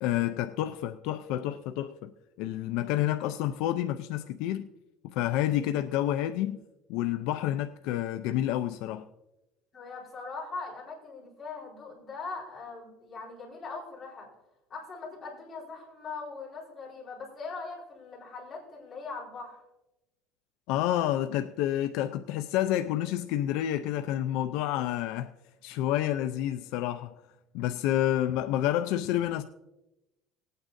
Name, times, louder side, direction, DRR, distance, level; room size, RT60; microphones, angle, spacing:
voice 1, 0.0-4.7 5.0-6.6 6.9-9.1 20.7-25.3 25.6-27.1 27.5-29.4, left 12 dB, 70° left, 0.4 m, -29 dB
voice 2, 9.7-14.3 14.7-19.6, left 4 dB, 20° left, 4.3 m, -41 dB
19.5 x 9.0 x 2.6 m
cardioid pair, 155°, 0 cm